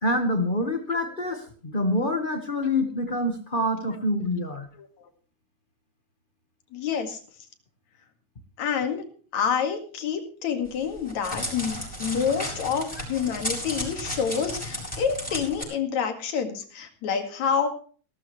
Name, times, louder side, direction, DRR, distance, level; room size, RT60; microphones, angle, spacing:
voice 1, 0.0-4.7, left 1 dB, 45° left, 6 dB, 0.6 m, -26 dB
voice 2, 6.7-7.2 8.6-9.0 9.3-17.7, left 7 dB, 70° left, 6 dB, 3.3 m, -28 dB
Crackle, 10.7-15.6, equal, 5° left, 6.4 m, -34 dB
17.5 x 13.5 x 3.2 m, 0.41 s
omnidirectional pair, 3.4 m